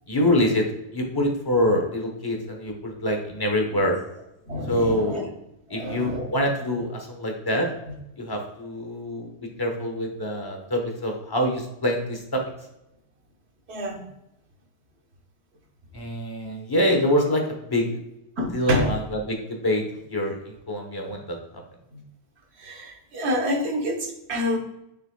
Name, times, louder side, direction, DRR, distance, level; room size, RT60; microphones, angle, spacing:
voice 1, 0.1-0.7 0.9-4.0 4.7-5.3 5.7-7.7 8.2-9.3 9.6-12.4 15.9-17.4 17.7-18.0 18.5-19.8 20.1-21.4, equal, 20° left, 2 dB, 1.0 m, -25 dB
voice 2, 4.5-5.2 5.7-6.4 13.7-14.0 18.4-18.9 21.9-22.0 22.6-24.6, left 1 dB, 55° right, 1 dB, 1.3 m, -28 dB
6.5 x 6.3 x 2.3 m, 0.86 s
omnidirectional pair, 1.3 m